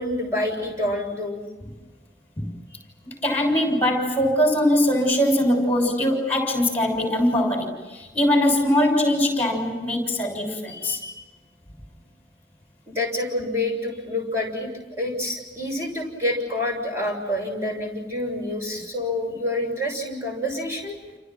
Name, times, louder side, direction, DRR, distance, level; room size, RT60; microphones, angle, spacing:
voice 1, 0.0-1.4 2.7-2.8 10.7-11.2 12.9-14.7 15.0-21.0, left 1 dB, 15° right, 1 dB, 6.9 m, -28 dB
voice 2, 3.0-11.0, left 1 dB, 10° left, 3 dB, 6.7 m, -22 dB
30.0 x 29.0 x 6.1 m, 1.2 s
head